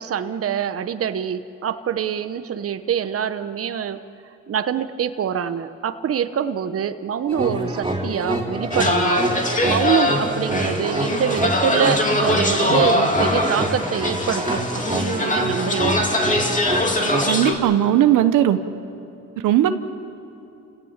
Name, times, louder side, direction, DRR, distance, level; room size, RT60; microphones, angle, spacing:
voice 1, 0.0-4.0 4.5-9.3 9.6-16.0, right 8 dB, 50° right, 10 dB, 1.1 m, -25 dB
sound 1, 7.3-17.2, right 1 dB, 15° right, 4.4 m, -26 dB
sound 2, 8.7-17.5, left 1 dB, 25° left, 2.7 m, -22 dB
voice 2, 17.3-18.6 19.4-19.8, right 11 dB, 85° right, 9 dB, 1.1 m, -17 dB
30.0 x 17.5 x 7.4 m, 2.9 s
cardioid pair, 90°, 30 cm